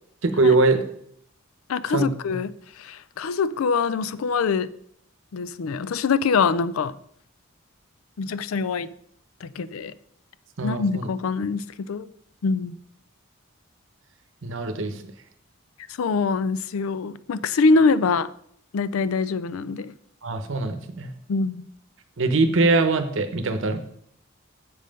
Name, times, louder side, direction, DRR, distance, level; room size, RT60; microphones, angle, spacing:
voice 1, 0.2-0.8 1.9-2.4 10.6-11.1 14.4-15.0 20.2-21.1 22.2-23.9, right 3 dB, 65° right, 8 dB, 0.8 m, -22 dB
voice 2, 1.7-4.7 5.3-7.0 8.2-8.9 9.4-9.9 10.6-12.1 12.4-12.7 15.9-18.3 18.7-19.9 21.3-21.7, left 4 dB, 90° left, 17 dB, 0.4 m, -24 dB
7.9 x 5.5 x 5.2 m, 0.70 s
head